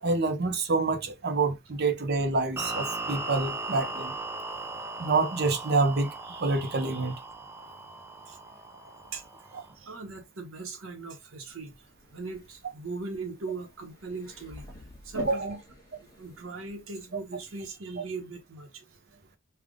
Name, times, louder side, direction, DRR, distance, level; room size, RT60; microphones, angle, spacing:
voice 1, 0.0-4.1 5.0-7.1 15.2-15.6, right 3 dB, 45° right, 0.7 m, -27 dB
sound 1, 2.6-9.7, right 2 dB, 10° right, 0.4 m, -38 dB
voice 2, 8.7-11.8 12.1-14.6 15.0-15.6 16.0-18.8 19.1-19.2, right 3 dB, 65° right, 1.0 m, -40 dB
sound 2, 11.5-17.7, left 2 dB, 15° left, 1.1 m, -49 dB
3.4 x 2.3 x 3.6 m
head